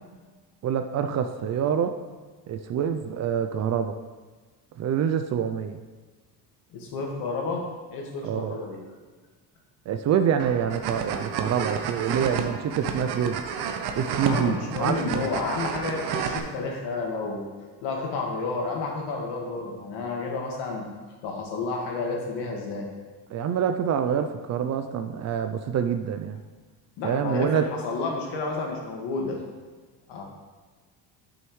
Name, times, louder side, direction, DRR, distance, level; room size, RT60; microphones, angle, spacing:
voice 1, 0.6-1.9 2.5-3.9 4.8-5.8 8.2-8.5 9.9-13.4 14.0-15.3 23.3-26.4 27.0-27.6, right 8 dB, 40° right, 8 dB, 0.4 m, -26 dB
voice 2, 6.7-8.8 14.2-17.5 17.8-20.9 21.2-22.9 27.0-29.4 30.1-30.2, left 3 dB, 70° left, 0 dB, 1.8 m, -31 dB
sound 1, 10.4-16.4, right 6 dB, 65° right, 0.8 m, -31 dB
8.9 x 6.4 x 3.1 m, 1.4 s
cardioid pair, 130°, 42 cm